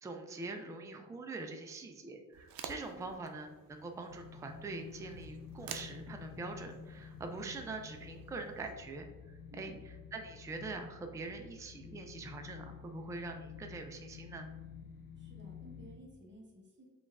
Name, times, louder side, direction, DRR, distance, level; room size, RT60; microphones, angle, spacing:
voice 1, 0.0-9.7 10.1-14.5, right 3 dB, 10° right, 4 dB, 0.3 m, -44 dB
sound 1, 2.3-8.7, right 7 dB, 85° right, 0.5 m, -52 dB
sound 2, 4.1-16.0, left 6 dB, 90° left, 0.5 m, -50 dB
voice 2, 9.5-9.8 15.2-16.9, equal, 35° right, -1 dB, 1.1 m, -55 dB
5.1 x 2.4 x 3.4 m, 1.2 s
wide cardioid pair, 140°, 34 cm